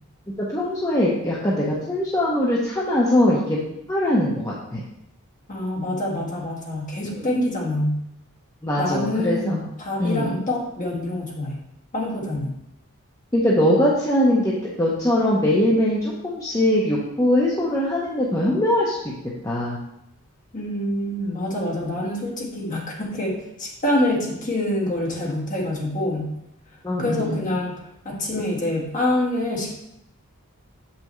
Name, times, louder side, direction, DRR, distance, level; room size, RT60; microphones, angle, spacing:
voice 1, 0.4-3.6 3.9-4.8 7.2-7.3 8.6-9.5 10.0-10.4 13.3-19.1 19.4-19.8 26.8-27.4, left 1 dB, 15° left, -5 dB, 0.8 m, -21 dB
voice 2, 5.5-8.0 8.8-11.6 11.9-12.5 20.5-26.3 27.0-29.7, left 1 dB, 35° left, -2 dB, 1.5 m, -26 dB
7.5 x 5.7 x 3.1 m, 0.82 s
head